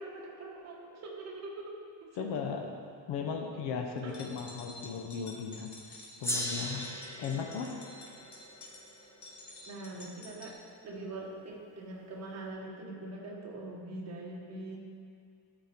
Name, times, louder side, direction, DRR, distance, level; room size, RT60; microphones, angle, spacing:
voice 1, 0.0-2.3 4.0-4.2 7.2-7.5 9.6-14.8, right 2 dB, 40° right, -2 dB, 1.5 m, -43 dB
voice 2, 2.2-2.7 3.1-6.9 7.2-7.7, left 6 dB, 75° left, 2 dB, 1.0 m, -37 dB
sound 1, 4.0-10.5, left 2 dB, 40° left, 1.6 m, -49 dB
Gong, 6.2-11.0, equal, 5° left, 0.7 m, -40 dB
12.5 x 4.5 x 4.4 m, 2.2 s
cardioid pair, 160°, 42 cm